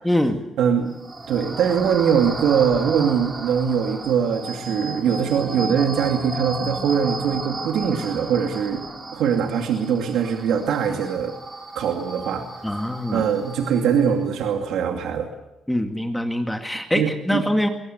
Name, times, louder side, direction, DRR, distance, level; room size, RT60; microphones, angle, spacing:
voice 1, 0.0-0.4 12.6-13.3 15.7-17.7, left 1 dB, 5° left, 5 dB, 2.2 m, -23 dB
voice 2, 0.6-0.9 1.3-8.8 9.1-11.3 11.7-12.4 13.1-15.3 16.9-17.4, right 7 dB, 80° right, 4 dB, 2.5 m, -22 dB
sound 1, 0.9-14.3, right 2 dB, 25° right, 3.9 m, -34 dB
23.0 x 18.0 x 8.1 m, 0.95 s
cardioid pair, 90°, 0 cm